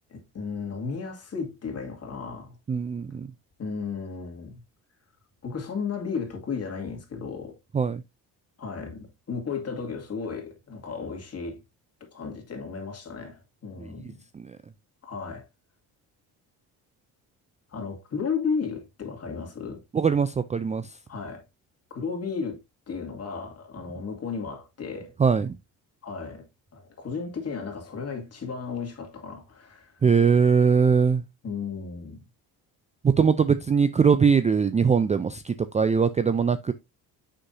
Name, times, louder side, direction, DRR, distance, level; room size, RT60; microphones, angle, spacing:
voice 1, 0.1-2.5 3.6-4.6 5.4-7.6 8.6-11.6 12.1-14.2 15.0-15.5 17.7-19.8 21.1-21.4 21.9-22.6 22.9-25.1 26.0-26.5 26.7-30.0 31.4-32.2, left 5 dB, 40° left, 2.4 m, -34 dB
voice 2, 2.7-3.3 7.7-8.0 14.3-14.5 19.9-20.9 25.2-25.6 30.0-31.2 33.0-36.7, right 6 dB, 20° right, 0.4 m, -21 dB
6.7 x 5.8 x 2.6 m
cardioid pair, 95°, 39 cm